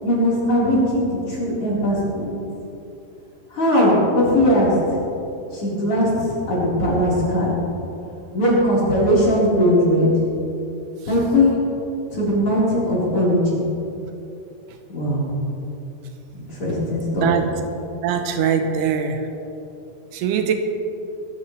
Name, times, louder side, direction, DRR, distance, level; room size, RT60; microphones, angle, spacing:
voice 1, 0.0-2.4 3.5-5.0 5.5-7.6 8.3-10.1 11.1-11.7 12.1-13.7 14.9-15.3 16.3-17.3, equal, 35° left, -7 dB, 4.7 m, -19 dB
voice 2, 17.1-17.5 18.0-19.3 20.1-20.5, right 7 dB, 85° right, 6 dB, 3.0 m, -22 dB
22.5 x 12.5 x 3.2 m, 2.8 s
omnidirectional pair, 4.7 m